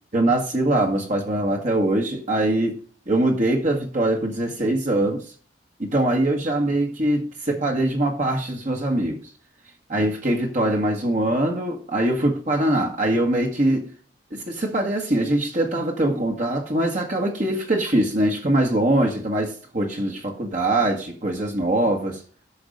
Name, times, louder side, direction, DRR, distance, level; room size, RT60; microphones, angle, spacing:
voice 1, 0.1-2.8 3.1-5.2 5.8-9.2 9.9-13.9 14.3-22.2, right 1 dB, 40° right, 1.6 m, -22 dB
9.7 x 6.2 x 5.3 m
head